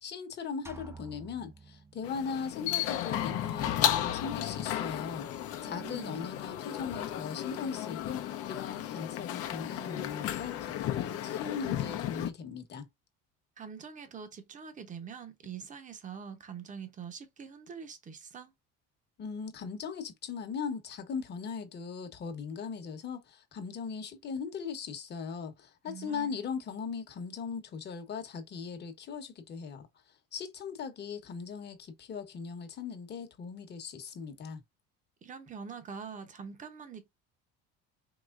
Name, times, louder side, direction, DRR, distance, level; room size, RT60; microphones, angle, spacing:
voice 1, 0.0-12.9 19.2-29.9 30.3-34.6, left 6 dB, 35° left, 1.1 m, -39 dB
sound 1, 0.7-2.5, right 4 dB, 10° right, 0.4 m, -50 dB
Walking up inside an office stairway, 2.0-12.3, left 11 dB, 50° left, 0.8 m, -34 dB
voice 2, 5.6-6.2 13.6-18.5 25.8-26.4 35.2-37.1, right 6 dB, 25° right, 0.9 m, -44 dB
4.9 x 3.1 x 2.5 m
cardioid pair, 140°, 30 cm